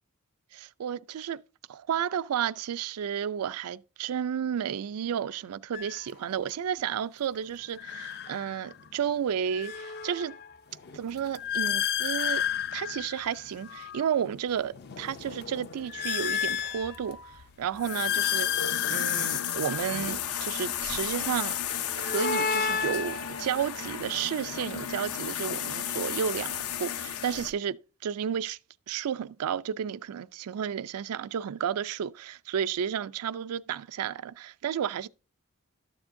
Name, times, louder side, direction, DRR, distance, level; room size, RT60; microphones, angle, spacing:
voice 1, 0.5-1.4 1.7-10.4 10.9-12.4 12.7-17.2 17.6-18.6 18.9-21.5 22.0-27.8 28.0-28.6 28.9-35.1, right 8 dB, 80° right, 0.4 m, -32 dB
sound 1, 5.7-6.0 7.7-8.9 9.3-14.1 14.6-17.3 17.7-20.7 21.7-24.0, left 8 dB, 45° left, 0.5 m, -33 dB
sound 2, 16.3-27.5, left 9 dB, 80° left, 0.7 m, -33 dB
12.5 x 7.0 x 2.6 m
head